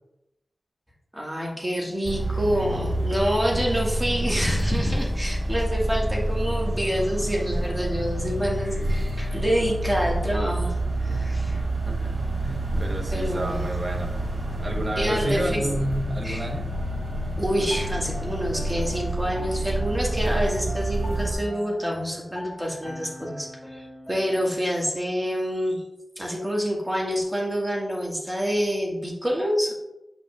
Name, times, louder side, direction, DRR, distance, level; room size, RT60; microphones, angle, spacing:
voice 1, 1.1-10.7 11.0-11.6 13.1-13.6 15.0-15.6 16.2-16.5 17.4-25.8 26.2-29.7, equal, 10° right, -3 dB, 2.0 m, -27 dB
sound 1, 2.0-21.3, right 1 dB, 75° right, 2.3 m, -28 dB
voice 2, 11.9-14.2 14.6-16.7, right 1 dB, 45° right, 1 dB, 1.2 m, -30 dB
Piano, 17.7-24.5, left 1 dB, 25° left, 0.8 m, -41 dB
7.6 x 5.9 x 2.5 m, 0.93 s
wide cardioid pair, 65°, 0 cm